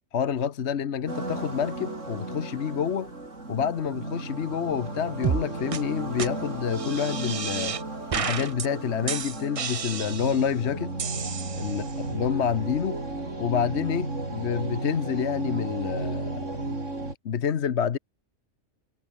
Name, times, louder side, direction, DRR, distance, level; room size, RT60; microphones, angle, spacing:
voice 1, 0.1-3.1 3.5-7.8 8.1-10.9 11.5-11.8 12.1-13.0 13.4-16.6 17.2-18.0, left 7 dB, 60° left, 1.2 m, -28 dB
sound 1, 1.1-17.2, right 2 dB, 75° right, 5.1 m, -34 dB
sound 2, 5.2-5.4 5.7-5.8 6.2-6.3 6.7-7.8 8.1-8.7 9.1-10.5 11.0-11.9, right 7 dB, 40° right, 0.5 m, -31 dB
omnidirectional pair, 1.3 m